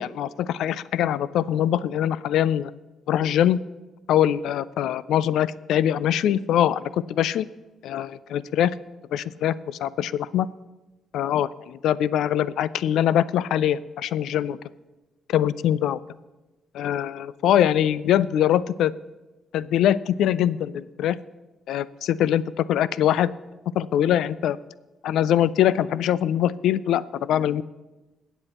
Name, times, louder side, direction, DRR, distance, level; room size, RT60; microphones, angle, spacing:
voice 1, 0.0-2.7 3.1-3.6 4.1-7.5 7.8-8.8 9.1-10.5 11.1-14.6 15.3-16.0 16.7-18.9 19.5-21.2 21.7-22.4 22.7-23.3 23.8-24.6 25.0-27.6, left 11 dB, 80° left, 18 dB, 0.3 m, -23 dB
22.0 x 8.1 x 3.0 m, 1.1 s
cardioid pair, 90°, 0 cm